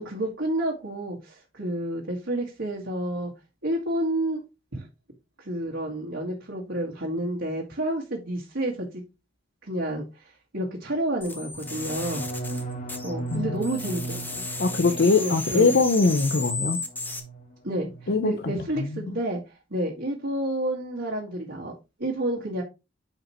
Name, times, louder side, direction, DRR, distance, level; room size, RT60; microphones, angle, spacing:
voice 1, 0.0-3.3 3.6-4.4 4.7-4.9 5.4-9.0 9.6-12.2 13.0-14.5 15.1-15.8 17.6-22.6, right 1 dB, 65° right, 1.9 m, -30 dB
sound 1, 11.2-13.4 13.6-17.2, left 3 dB, 10° left, 1.0 m, -34 dB
sound 2, 11.5-17.4 17.7-18.2 18.5-18.9, right 2 dB, 40° left, 1.8 m, -37 dB
voice 2, 13.3-13.6 14.6-16.8 18.1-19.1, left 3 dB, 60° left, 0.7 m, -22 dB
8.9 x 5.0 x 3.1 m
head